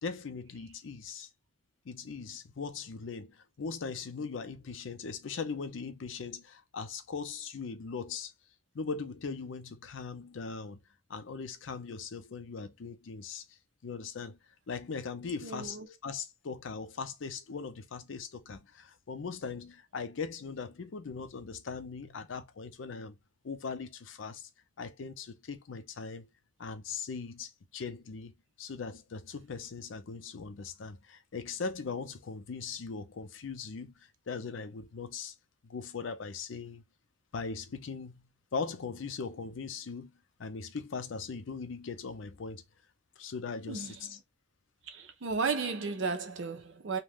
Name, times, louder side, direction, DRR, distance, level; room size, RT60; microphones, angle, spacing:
voice 1, 0.0-1.3 1.8-8.3 8.7-10.8 11.1-13.6 13.8-14.4 14.7-23.2 23.4-24.5 24.8-26.3 26.6-28.3 28.6-35.3 35.6-36.8 37.3-38.2 38.5-40.1 40.4-42.6 43.2-44.2, left 5 dB, 85° left, 0.5 m, -40 dB
voice 2, 15.4-15.9 43.7-44.2 44.8-47.0, right 4 dB, 75° right, 0.6 m, -34 dB
2.4 x 2.2 x 3.4 m
head